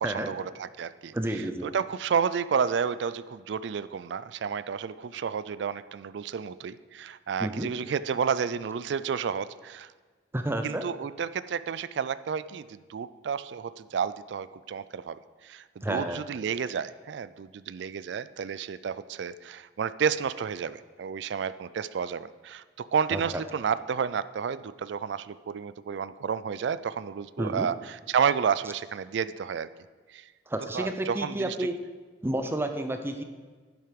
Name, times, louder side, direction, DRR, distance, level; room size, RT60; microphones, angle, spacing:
voice 1, 0.0-9.9 10.6-29.7 30.1-30.3 30.7-31.7, right 7 dB, 65° right, 15 dB, 0.3 m, -31 dB
voice 2, 1.1-1.7 7.4-7.7 10.3-10.9 15.8-16.2 23.1-23.4 27.4-27.7 30.5-31.8 32.2-33.2, right 1 dB, 15° right, 7 dB, 0.5 m, -30 dB
10.5 x 7.8 x 5.2 m, 1.4 s
head